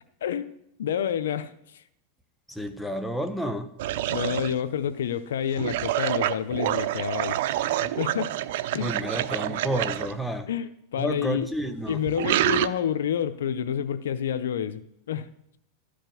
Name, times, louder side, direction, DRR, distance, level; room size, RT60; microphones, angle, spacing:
voice 1, 0.8-1.8 4.1-7.4 7.8-8.4 8.7-8.9 10.5-11.5 11.9-15.3, left 9 dB, 90° left, 13 dB, 0.7 m, -29 dB
voice 2, 2.5-3.7 8.8-10.5 11.0-12.0, equal, ahead, 5 dB, 1.1 m, -30 dB
sound 1, 3.8-4.6 5.5-10.1 11.5-12.7, right 13 dB, 70° right, 0.5 m, -27 dB
13.5 x 5.1 x 9.2 m, 0.76 s
supercardioid pair, 125°, 0 cm